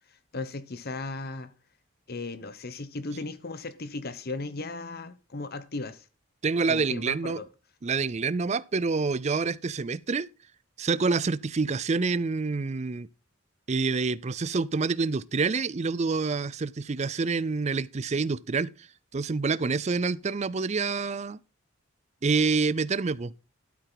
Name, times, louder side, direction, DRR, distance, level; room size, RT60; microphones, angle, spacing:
voice 1, 0.1-1.5 2.1-6.1 6.7-7.4, left 3 dB, 45° left, 0.9 m, -36 dB
voice 2, 6.4-7.4 7.8-10.3 10.8-13.1 13.7-18.7 19.1-21.4 22.2-23.3, right 4 dB, 30° right, 0.4 m, -27 dB
12.0 x 8.8 x 4.0 m
head